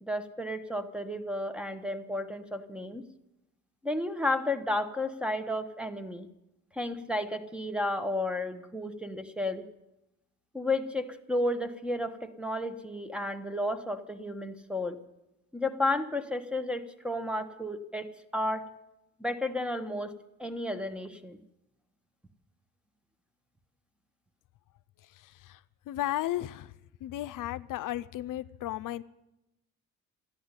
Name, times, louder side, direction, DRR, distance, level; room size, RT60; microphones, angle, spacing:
voice 1, 0.0-3.0 3.8-6.3 6.7-9.7 10.5-15.0 15.5-18.7 19.2-20.1 20.4-21.4, left 1 dB, 5° right, 10 dB, 0.9 m, -32 dB
voice 2, 25.0-26.7 27.0-29.0, left 14 dB, 75° left, 13 dB, 0.5 m, -35 dB
13.5 x 11.0 x 9.6 m, 0.92 s
cardioid pair, 140°, 33 cm